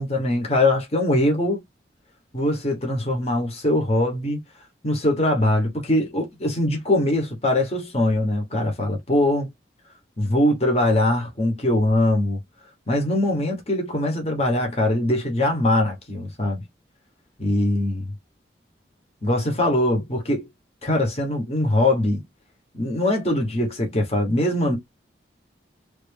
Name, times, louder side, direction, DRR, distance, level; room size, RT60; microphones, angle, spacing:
voice 1, 0.0-1.6 2.3-4.4 4.8-9.5 10.2-12.4 12.9-16.6 17.4-18.1 19.2-20.5 20.8-22.2 22.7-24.8, left 1 dB, 35° left, 1.2 m, -22 dB
3.2 x 2.7 x 3.4 m
head